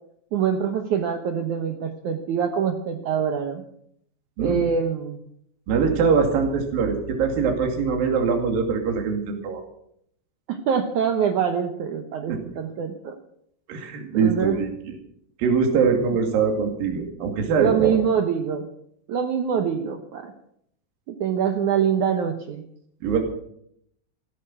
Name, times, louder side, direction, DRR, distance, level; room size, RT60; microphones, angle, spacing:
voice 1, 0.3-3.6 4.4-5.2 10.5-13.2 14.0-14.6 17.6-18.6 19.1-20.3 21.1-22.6, right 7 dB, 75° right, 5 dB, 1.8 m, -24 dB
voice 2, 5.7-9.6 12.3-12.4 13.7-14.7 15.4-18.0 23.0-23.2, right 5 dB, 60° right, 3 dB, 4.0 m, -22 dB
16.0 x 14.0 x 6.1 m, 0.71 s
omnidirectional pair, 5.0 m